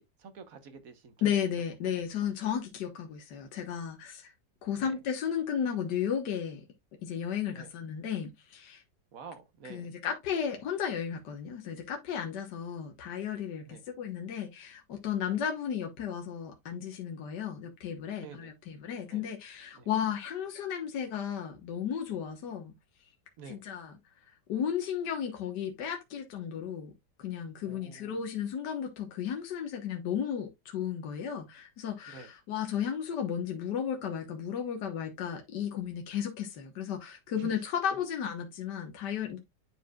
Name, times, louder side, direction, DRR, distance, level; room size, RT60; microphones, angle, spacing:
voice 1, 0.0-1.1 4.8-5.0 7.5-7.7 9.1-9.9 13.7-13.8 18.2-18.5 19.1-19.2 19.7-19.9 23.4-23.6 27.7-28.2 32.1-32.3 37.4-37.5, right 5 dB, 55° right, 1.4 m, -48 dB
voice 2, 1.2-4.3 4.6-6.7 7.0-8.8 9.6-22.7 23.5-23.9 24.3-26.9 27.2-39.4, left 8 dB, 70° left, 1.8 m, -34 dB
11.0 x 4.6 x 2.3 m
omnidirectional pair, 1.9 m